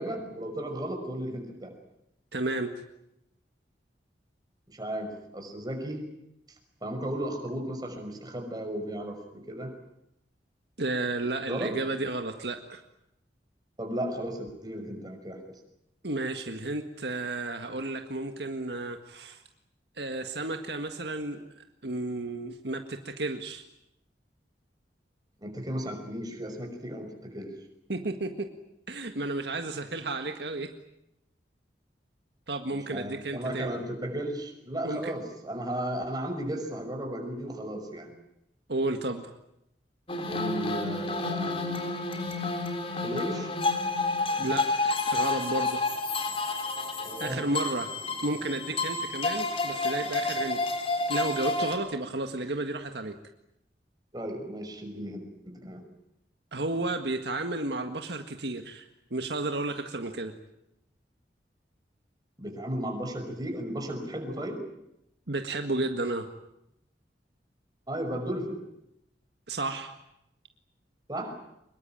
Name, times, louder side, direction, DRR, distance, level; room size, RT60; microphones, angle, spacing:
voice 1, 0.0-1.7 4.7-6.1 6.8-9.7 11.5-11.7 13.8-15.4 25.4-27.5 32.7-38.1 40.3-41.8 43.0-43.5 47.0-47.4 54.1-55.8 62.4-64.6 67.9-68.6 71.1-71.3, right 1 dB, 25° right, 4 dB, 5.8 m, -35 dB
voice 2, 2.3-2.7 10.8-12.8 16.0-19.4 20.0-23.6 27.9-28.5 28.9-30.7 32.5-33.8 34.8-35.1 38.7-39.3 44.4-46.0 47.2-48.0 48.2-50.6 51.1-53.2 56.5-60.3 65.3-66.3 69.5-69.9, right 2 dB, 65° right, 5 dB, 1.8 m, -32 dB
sound 1, 40.1-51.8, left 3 dB, 30° left, 3.8 m, -30 dB
25.0 x 22.0 x 9.1 m, 0.82 s
head